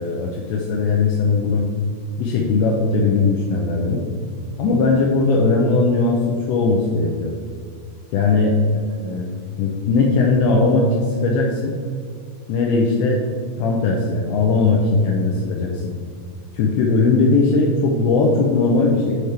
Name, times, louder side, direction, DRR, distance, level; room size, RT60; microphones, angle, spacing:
voice 1, 0.0-1.7 2.2-4.0 4.6-7.3 8.1-8.5 9.0-9.3 9.6-11.7 12.5-13.2 13.6-15.8 16.5-19.2, left 3 dB, 80° left, 0 dB, 2.8 m, -19 dB
7.9 x 5.1 x 4.3 m, 2.1 s
omnidirectional pair, 5.4 m